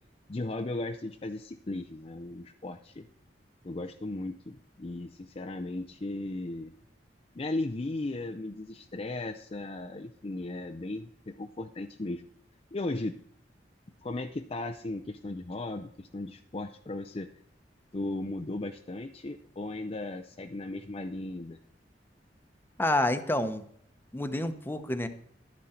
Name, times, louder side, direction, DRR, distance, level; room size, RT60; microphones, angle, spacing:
voice 1, 0.3-3.1 3.6-6.7 7.3-12.2 12.7-13.2 14.0-17.3 17.9-21.6, left 2 dB, 35° left, 4 dB, 0.5 m, -36 dB
voice 2, 22.8-23.6 24.1-25.1, left 1 dB, 10° left, 8 dB, 0.9 m, -28 dB
12.0 x 10.5 x 4.4 m, 0.63 s
head